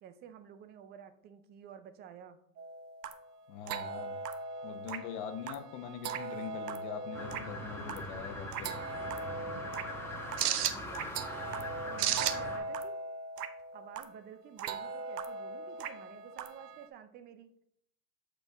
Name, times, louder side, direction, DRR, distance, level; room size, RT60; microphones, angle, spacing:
voice 1, 0.0-2.4 10.4-11.1 11.8-13.0 13.7-17.5, right 8 dB, 25° right, 11 dB, 0.4 m, -51 dB
sound 1, 2.6-16.9, right 6 dB, 85° right, 0.8 m, -38 dB
voice 2, 3.5-4.2 4.6-8.9, left 7 dB, 50° left, 8 dB, 1.1 m, -43 dB
sound 2, 7.1-12.6, left 1 dB, 5° left, 1.3 m, -42 dB
7.6 x 4.5 x 3.5 m, 0.71 s
hypercardioid pair, 115°, 46 cm